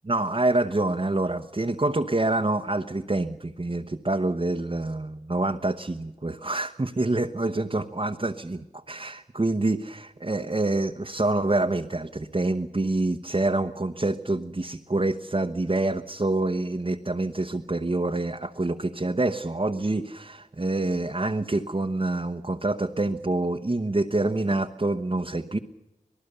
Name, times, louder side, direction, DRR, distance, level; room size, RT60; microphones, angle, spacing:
voice 1, 0.0-25.6, right 2 dB, 35° right, 4 dB, 1.0 m, -26 dB
26.0 x 19.0 x 6.8 m, 0.94 s
wide cardioid pair, 65°, 15 cm